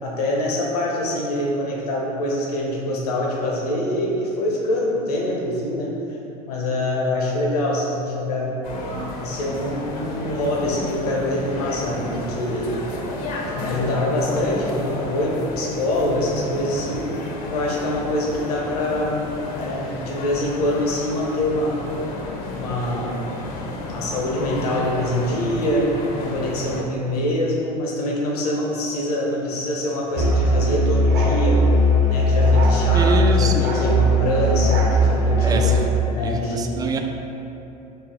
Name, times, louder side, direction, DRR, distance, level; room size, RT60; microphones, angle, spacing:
voice 1, 0.0-5.9 6.5-8.5 9.2-12.7 13.5-17.1 17.5-19.2 19.5-21.8 22.5-23.1 23.9-25.9 26.2-31.6 32.0-35.6 36.1-36.8, left 1 dB, 70° left, -3 dB, 0.9 m, -24 dB
sound 1, 8.6-26.8, left 2 dB, 45° left, 0.7 m, -31 dB
Musical instrument, 30.1-35.9, equal, 45° right, 1.0 m, -18 dB
voice 2, 32.9-33.6 35.4-35.8 36.2-37.0, right 3 dB, 20° right, 4 dB, 0.4 m, -25 dB
4.7 x 2.8 x 3.8 m, 2.9 s
hypercardioid pair, 75°, 20 cm